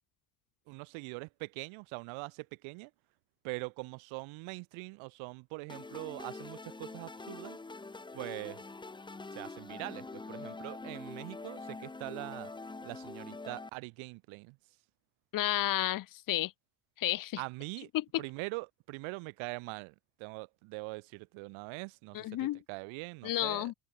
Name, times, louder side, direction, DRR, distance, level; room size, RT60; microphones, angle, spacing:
voice 1, 0.7-2.9 3.4-7.6 8.1-8.6 9.3-12.5 12.8-14.6 17.4-17.9 18.2-23.7, right 28 dB, 75° right, 0.9 m, -43 dB
sound 1, 5.7-13.7, left 3 dB, 10° left, 1.0 m, -45 dB
voice 2, 15.3-16.5 17.0-17.4 17.9-18.0 22.1-22.6 23.2-23.7, left 15 dB, 45° left, 0.8 m, -31 dB
open air
cardioid pair, 115°, 48 cm